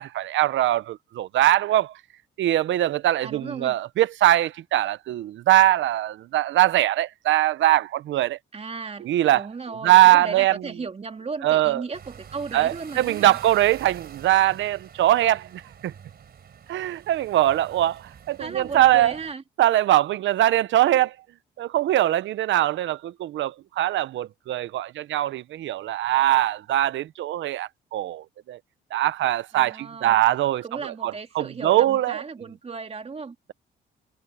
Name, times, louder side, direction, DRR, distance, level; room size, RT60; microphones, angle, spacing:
voice 1, 0.0-1.9 2.4-8.4 9.1-9.4 9.8-10.5 11.4-11.8 12.5-15.9 16.7-19.1 19.6-21.1 21.6-28.6 28.9-32.2, right 14 dB, 75° right, 0.7 m, -22 dB
voice 2, 3.2-3.8 8.5-13.4 18.4-19.4 29.5-30.2 30.6-33.4, right 4 dB, 30° right, 2.5 m, -35 dB
sound 1, 11.9-19.3, right 7 dB, 55° right, 4.1 m, -46 dB
cardioid pair, 90°, 20 cm